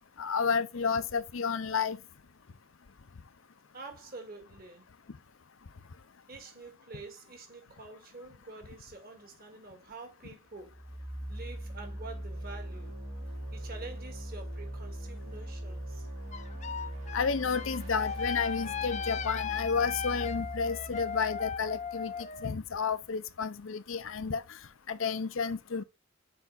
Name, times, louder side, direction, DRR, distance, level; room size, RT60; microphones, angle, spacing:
voice 1, 0.2-2.0 17.1-22.1 22.4-24.6 24.9-25.8, left 5 dB, 70° left, 0.6 m, -31 dB
voice 2, 3.7-4.9 6.3-10.8 11.3-12.9 13.5-16.1, right 3 dB, 45° right, 1.9 m, -47 dB
sound 1, 10.6-22.4, right 1 dB, 80° right, 4.1 m, -41 dB
sound 2, 16.3-22.5, left 7 dB, 35° left, 0.6 m, -37 dB
6.9 x 4.6 x 3.9 m
head